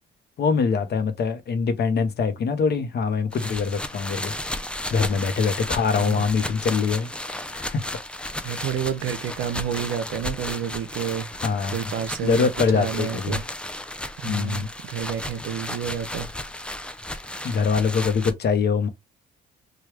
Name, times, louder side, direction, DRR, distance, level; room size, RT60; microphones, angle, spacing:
voice 1, 0.4-4.3 4.9-7.8 8.4-8.6 11.4-11.8 12.2-13.4 14.2-14.7 17.4-18.9, left 5 dB, 55° left, 0.7 m, -24 dB
sound 1, 3.3-18.3, left 1 dB, 5° left, 0.4 m, -34 dB
voice 2, 5.9-6.3 8.4-11.3 11.7-13.4 14.2-16.3, right 8 dB, 80° right, 0.6 m, -30 dB
3.2 x 2.2 x 3.0 m
cardioid pair, 90°, 20 cm